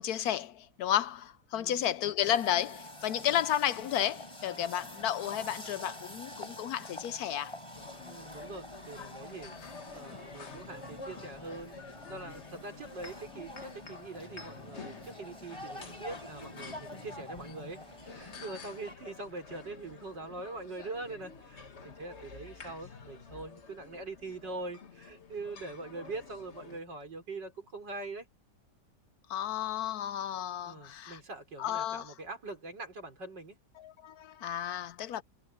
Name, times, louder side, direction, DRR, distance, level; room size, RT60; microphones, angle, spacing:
voice 1, 0.0-7.5 29.3-31.2 31.6-32.1 33.8-35.2, left 11 dB, 70° left, 1.0 m, -32 dB
voice 2, 1.5-1.9 8.1-9.5 9.9-28.3 30.6-33.6, right 3 dB, 85° right, 5.7 m, -43 dB
sound 1, 2.2-19.0, left 1 dB, 15° left, 4.9 m, -47 dB
sound 2, 7.7-26.8, left 4 dB, 40° left, 1.7 m, -49 dB
omnidirectional pair, 1.9 m